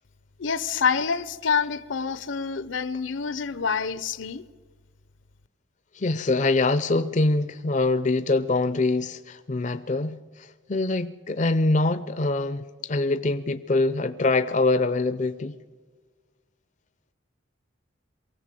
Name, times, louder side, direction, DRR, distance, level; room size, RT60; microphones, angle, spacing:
voice 1, 0.4-4.4, left 6 dB, 70° left, 0.7 m, -27 dB
voice 2, 5.9-15.5, left 2 dB, 40° left, 0.5 m, -24 dB
23.5 x 16.5 x 7.6 m
head